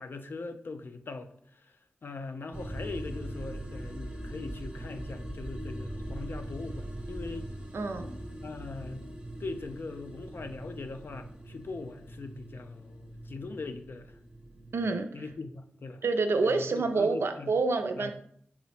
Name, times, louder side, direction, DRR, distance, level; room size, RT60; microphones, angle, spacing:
voice 1, 0.0-1.8 2.0-7.5 8.4-9.0 9.4-14.2 15.1-16.0 16.4-17.5 18.0-18.1, left 3 dB, 60° left, 8 dB, 0.3 m, -41 dB
sound 1, 2.5-14.8, right 1 dB, 20° right, 0.5 m, -41 dB
voice 2, 7.7-8.1 14.7-15.1 16.0-18.1, right 3 dB, 70° right, 7 dB, 0.4 m, -27 dB
3.8 x 2.0 x 4.2 m, 0.64 s
wide cardioid pair, 75°, 4 cm